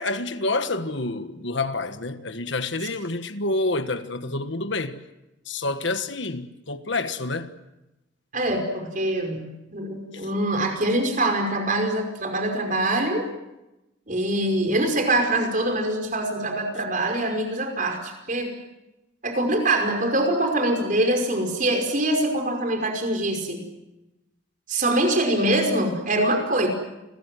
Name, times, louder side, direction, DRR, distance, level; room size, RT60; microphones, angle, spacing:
voice 1, 0.0-5.0 5.5-7.5 10.1-10.3, left 2 dB, 65° left, 1.5 m, -28 dB
voice 2, 8.3-13.2 14.1-18.5 19.2-23.6 24.7-26.7, right 1 dB, 40° right, 5.4 m, -24 dB
29.5 x 22.5 x 7.8 m
head